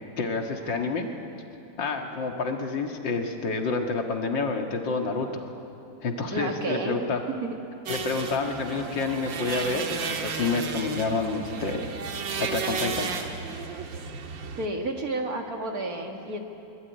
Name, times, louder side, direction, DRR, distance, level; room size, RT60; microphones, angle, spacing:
voice 1, 0.2-1.1 1.8-5.5 6.0-7.2 7.9-11.9 12.4-13.1, left 4 dB, 75° left, 3 dB, 2.5 m, -28 dB
voice 2, 6.3-7.0 7.4-7.6 14.6-16.4, right 2 dB, 50° right, 3 dB, 2.3 m, -31 dB
sound 1, 7.9-14.7, right 5 dB, 75° right, 2.2 m, -33 dB
23.0 x 22.0 x 9.4 m, 2.8 s
omnidirectional pair, 2.1 m